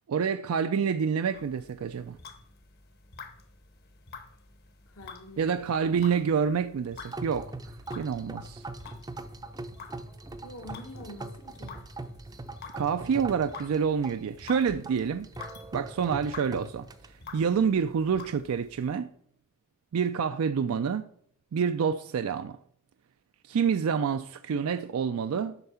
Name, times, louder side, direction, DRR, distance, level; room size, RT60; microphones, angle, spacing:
voice 1, 0.1-2.2 5.4-7.5 7.9-8.6 12.8-15.3 15.7-16.9 17.3-19.1 19.9-21.1 21.5-22.6 23.5-25.6, right 6 dB, 80° right, 0.4 m, -27 dB
sound 1, 1.3-18.9, left 5 dB, 50° left, 1.0 m, -49 dB
voice 2, 4.9-5.9 10.4-11.8, left 1 dB, 75° left, 1.4 m, -46 dB
sound 2, 7.0-17.1, right 2 dB, 20° right, 0.5 m, -41 dB
8.0 x 5.7 x 5.5 m
head